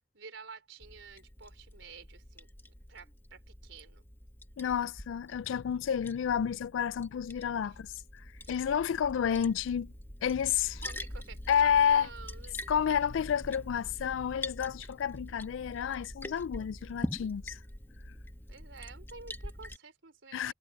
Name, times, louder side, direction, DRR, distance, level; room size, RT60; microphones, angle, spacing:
voice 1, 0.1-4.1 7.6-7.8 8.4-8.7 10.8-12.6 18.5-20.5, right 5 dB, 75° right, 4.0 m, -50 dB
Liquid, 0.8-19.8, left 1 dB, 10° left, 1.4 m, -44 dB
voice 2, 4.6-7.9 8.5-9.9 10.2-10.8 11.5-12.1 12.7-17.6 18.1-18.2 20.3-20.5, left 8 dB, 85° left, 0.3 m, -30 dB
head